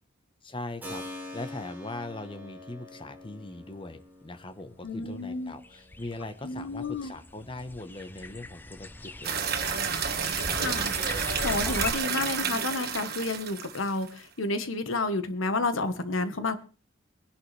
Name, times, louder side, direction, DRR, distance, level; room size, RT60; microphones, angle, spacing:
voice 1, 0.4-1.0 1.3-9.9 10.4-10.7, left 2 dB, 25° left, 1.1 m, -40 dB
Keyboard (musical), 0.8-9.4, left 1 dB, 10° right, 5.0 m, -47 dB
voice 2, 4.8-5.5 6.4-7.1 10.5-16.6, left 3 dB, 75° left, 1.4 m, -31 dB
sound 1, 4.9-5.0 5.6-11.9, left 2 dB, 10° left, 0.6 m, -39 dB
sound 2, 9.2-14.1, right 7 dB, 50° right, 1.5 m, -30 dB
22.0 x 11.0 x 3.4 m
head